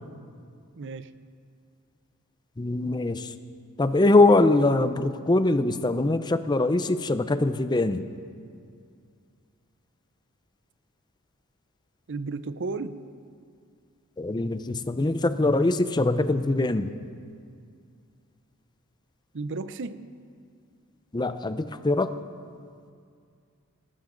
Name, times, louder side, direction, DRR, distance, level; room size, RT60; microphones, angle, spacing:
voice 1, 0.8-1.1 12.1-13.0 19.3-20.0, right 3 dB, 55° right, 13 dB, 0.6 m, -33 dB
voice 2, 2.6-3.3 3.8-8.0 14.2-16.9 21.1-22.1, left 2 dB, 20° left, 11 dB, 0.5 m, -22 dB
18.5 x 18.0 x 3.9 m, 2.2 s
head